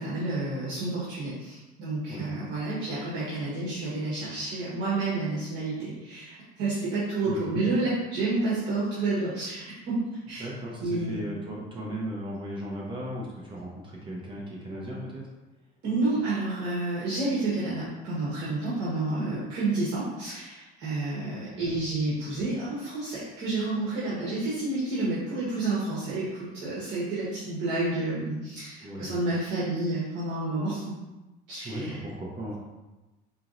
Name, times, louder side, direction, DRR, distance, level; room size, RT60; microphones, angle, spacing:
voice 1, 0.0-9.9 10.3-10.5 10.8-11.2 15.8-30.8 31.5-32.0, right 2 dB, 55° right, -9 dB, 1.3 m, -30 dB
voice 2, 7.2-7.7 10.4-15.2 21.5-21.7 28.8-29.1 31.6-32.5, right 1 dB, 25° right, -4 dB, 0.8 m, -36 dB
4.4 x 3.0 x 2.6 m, 1.1 s
cardioid pair, 140°, 21 cm